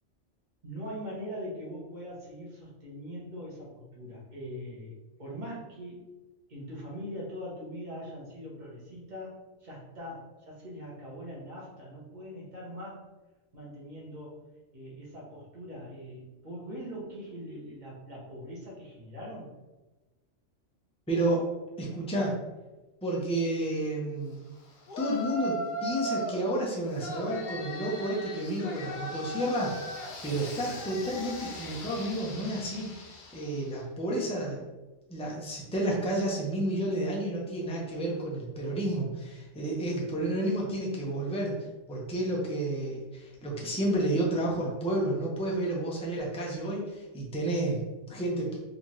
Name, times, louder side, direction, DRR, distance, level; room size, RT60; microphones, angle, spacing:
voice 1, 0.6-4.9 5.2-6.0 6.5-9.3 9.6-13.0 13.5-14.4 14.7-19.5, equal, 40° right, -6 dB, 1.3 m, -42 dB
voice 2, 21.1-21.4 21.8-22.3 23.0-24.4 25.0-32.9 33.3-34.6 35.1-41.5 41.9-48.6, right 1 dB, 5° left, -3 dB, 0.5 m, -31 dB
Yell, 24.9-26.4 27.0-33.7, equal, 50° left, 0.7 m, -38 dB
4.1 x 2.8 x 3.1 m, 1.1 s
omnidirectional pair, 1.3 m